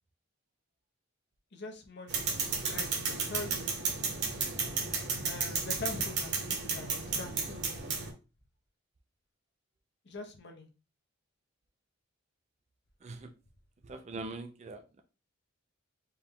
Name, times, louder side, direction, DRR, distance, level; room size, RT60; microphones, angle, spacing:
voice 1, 1.5-2.2 2.7-3.7 5.2-7.8 10.0-10.7, left 3 dB, 55° left, 0.8 m, -43 dB
sound 1, 2.1-8.1, right 5 dB, 55° right, 1.1 m, -33 dB
voice 2, 13.0-13.3 13.8-15.0, right 3 dB, 35° right, 0.4 m, -42 dB
4.6 x 2.3 x 3.6 m
head